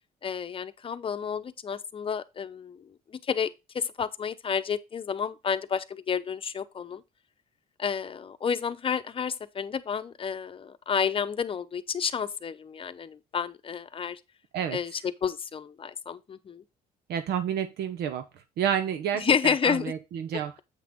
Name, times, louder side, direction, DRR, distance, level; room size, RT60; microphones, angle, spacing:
voice 1, 0.2-3.5 3.7-7.0 7.8-14.2 14.7-16.6 19.1-19.9 20.3-20.6, left 6 dB, 30° left, 0.8 m, -30 dB
voice 2, 17.1-18.2 18.6-20.5, right 9 dB, 75° right, 0.9 m, -29 dB
8.2 x 5.9 x 3.7 m
cardioid pair, 110°, 17 cm